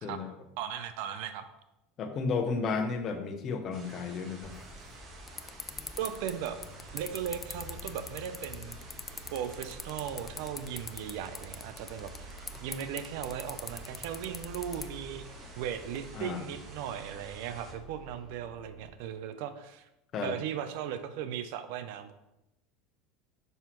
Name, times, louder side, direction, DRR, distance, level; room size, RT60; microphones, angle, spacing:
voice 1, 0.6-1.4 6.0-6.6 6.9-8.8 9.3-15.3 15.6-19.9 20.2-22.1, right 9 dB, 70° right, 11 dB, 0.5 m, -37 dB
voice 2, 2.0-4.5 16.2-16.4 20.1-20.4, left 4 dB, 45° left, 6 dB, 0.9 m, -32 dB
sound 1, 3.7-17.7, right 3 dB, 45° right, 1.3 m, -52 dB
sound 2, 4.4-16.0, left 5 dB, 25° left, 0.4 m, -45 dB
sound 3, 6.5-18.9, right 4 dB, 5° left, 2.3 m, -51 dB
5.7 x 5.5 x 3.0 m, 0.91 s
supercardioid pair, 100°, 0 cm